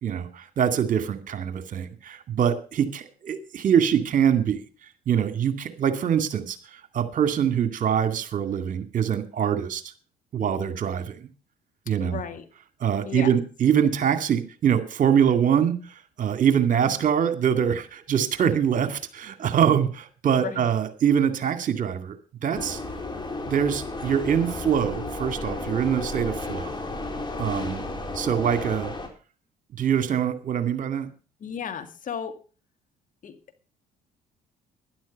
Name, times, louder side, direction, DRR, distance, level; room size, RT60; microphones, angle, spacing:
voice 1, 0.0-4.6 5.1-9.9 10.3-11.3 11.9-12.2 12.8-22.2 22.4-22.8 23.4-26.7 27.4-27.9 28.1-28.9 29.8-31.1, right 8 dB, 50° right, 9 dB, 2.3 m, -24 dB
voice 2, 12.0-12.5 13.1-13.3 20.3-20.6 31.4-32.3 33.2-33.3, left 7 dB, 50° left, 9 dB, 2.1 m, -34 dB
sound 1, 22.5-29.1, left 2 dB, 25° left, 4.2 m, -33 dB
12.0 x 11.0 x 5.3 m, 0.36 s
hypercardioid pair, 65°, 18 cm